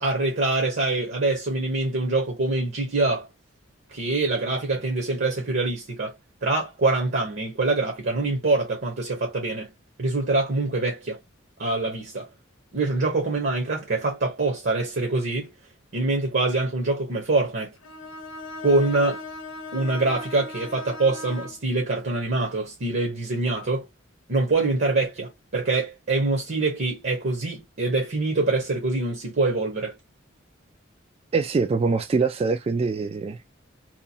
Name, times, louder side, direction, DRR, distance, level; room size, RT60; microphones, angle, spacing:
voice 1, 0.0-3.3 3.9-6.1 6.4-9.7 10.0-11.2 11.6-12.3 12.7-15.5 15.9-17.7 18.6-19.2 19.7-23.9 24.3-29.9, right 2 dB, 60° right, 0.9 m, -24 dB
Bowed string instrument, 17.8-21.6, left 2 dB, 75° left, 0.7 m, -38 dB
voice 2, 31.3-33.4, right 4 dB, 30° right, 0.3 m, -24 dB
2.9 x 2.2 x 2.7 m
head